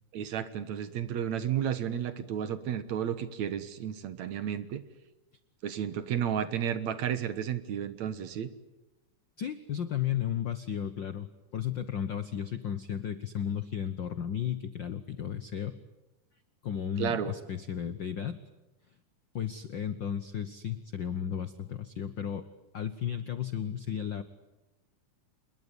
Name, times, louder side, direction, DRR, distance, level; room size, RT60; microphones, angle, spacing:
voice 1, 0.1-4.8 5.6-8.5 17.0-17.3, right 9 dB, 65° right, 13 dB, 2.5 m, -32 dB
voice 2, 9.4-15.8 16.6-18.4 19.3-22.5 22.7-24.2, left 9 dB, 70° left, 12 dB, 1.0 m, -34 dB
27.0 x 21.5 x 9.9 m, 1.0 s
omnidirectional pair, 3.6 m